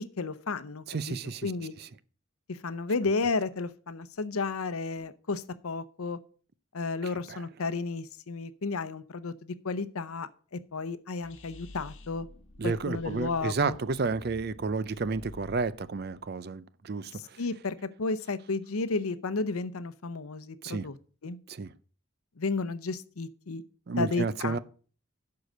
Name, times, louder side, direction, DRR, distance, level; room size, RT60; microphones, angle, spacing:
voice 1, 0.0-1.1 1.4-1.7 2.5-6.2 6.7-12.3 12.6-13.8 17.1-21.0 21.2-21.4 22.4-23.6 24.0-24.6, left 3 dB, 85° left, 0.7 m, -33 dB
voice 2, 0.9-1.5 1.8-1.9 7.3-7.4 12.6-17.1 20.6-20.9 21.5-21.7 23.9-24.6, right 4 dB, 45° right, 0.5 m, -31 dB
sound 1, 11.2-16.3, left 1 dB, 60° left, 1.5 m, -51 dB
11.5 x 4.8 x 6.3 m
head